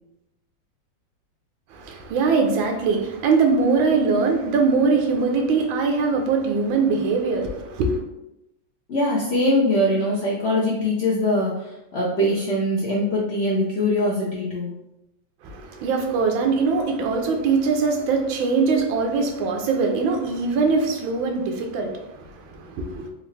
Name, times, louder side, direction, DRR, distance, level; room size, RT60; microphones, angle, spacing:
voice 1, 1.7-8.0 15.4-23.1, right 4 dB, 80° right, 1.4 m, -22 dB
voice 2, 8.9-14.7, left 1 dB, 85° left, 0.5 m, -22 dB
4.1 x 2.4 x 3.2 m
omnidirectional pair, 2.1 m